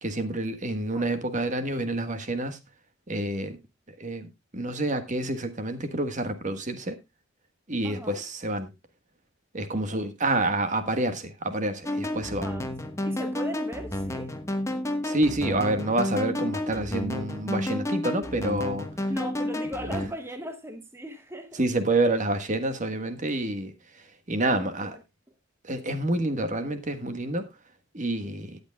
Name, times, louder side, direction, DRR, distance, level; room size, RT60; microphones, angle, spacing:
voice 1, 0.0-2.6 3.1-3.6 4.0-7.0 7.7-8.7 9.5-12.4 15.0-19.1 21.5-25.0 25.6-27.5 27.9-28.6, right 2 dB, 40° right, 1.4 m, -28 dB
voice 2, 7.8-8.2 12.4-14.4 19.1-21.6 24.4-25.0, equal, 10° right, 1.0 m, -38 dB
sound 1, 11.8-20.1, left 1 dB, 15° left, 1.2 m, -31 dB
18.0 x 8.2 x 2.3 m
head